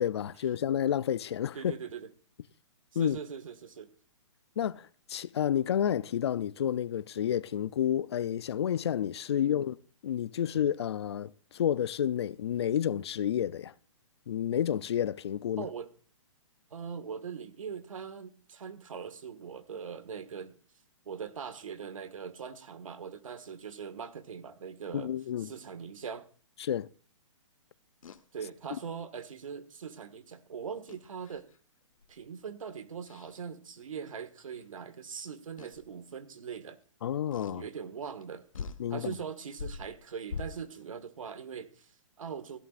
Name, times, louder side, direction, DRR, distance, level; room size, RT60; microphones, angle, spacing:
voice 1, 0.0-1.8 3.0-3.2 4.6-9.8 10.0-13.7 14.3-15.7 24.9-25.5 26.6-26.9 37.0-37.6 38.8-39.1, left 10 dB, 55° left, 0.5 m, -30 dB
voice 2, 1.5-2.1 2.9-3.9 9.3-9.5 15.6-15.9 16.7-20.5 21.1-25.1 25.4-26.3 28.3-31.5 32.1-36.8 37.5-38.5 38.9-42.6, right 6 dB, 80° right, 1.8 m, -41 dB
sound 1, 28.0-28.2 30.9-31.6 32.0-32.3 33.1-33.4 34.5-34.6 35.6-35.9 37.3-37.6 38.2-38.3 38.5-38.9 39.5-40.8, left 5 dB, 85° left, 1.6 m, -42 dB
16.0 x 14.5 x 2.5 m
hypercardioid pair, 165°, 17 cm